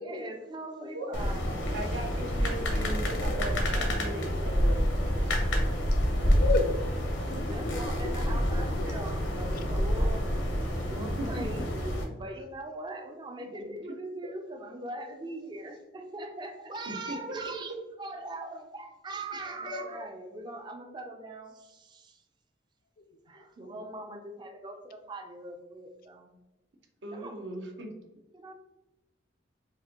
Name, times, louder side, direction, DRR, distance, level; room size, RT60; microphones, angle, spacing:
voice 1, 0.0-1.7 7.2-10.3 10.9-22.2 23.3-26.3 27.1-27.4 28.3-28.5, right 2 dB, 25° right, 4 dB, 0.4 m, -41 dB
sound 1, 1.1-12.0, equal, 90° left, 0.8 m, -28 dB
voice 2, 1.7-4.9 5.2-5.3 11.0-11.6 16.9-17.2 27.0-27.9, right 1 dB, 70° right, 3 dB, 0.7 m, -38 dB
voice 3, 6.1-6.8 7.3-7.8 8.0-8.9 19.7-20.0, left 3 dB, 50° left, 8 dB, 0.3 m, -33 dB
4.0 x 2.5 x 2.8 m, 1.0 s
head